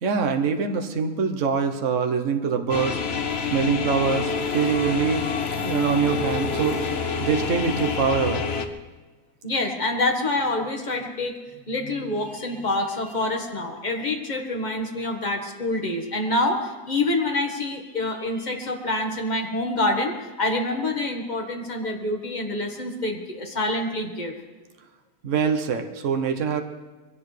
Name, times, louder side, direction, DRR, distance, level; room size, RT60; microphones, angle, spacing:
voice 1, 0.0-3.0 3.5-5.3 5.6-8.5 25.2-26.6, right 6 dB, 55° right, 5 dB, 1.3 m, -24 dB
sound 1, 2.7-8.7, left 5 dB, 50° left, 0.9 m, -27 dB
voice 2, 9.4-11.4 11.7-24.3, left 2 dB, 30° left, 2 dB, 1.6 m, -26 dB
23.0 x 17.0 x 3.3 m, 1.2 s
omnidirectional pair, 1.7 m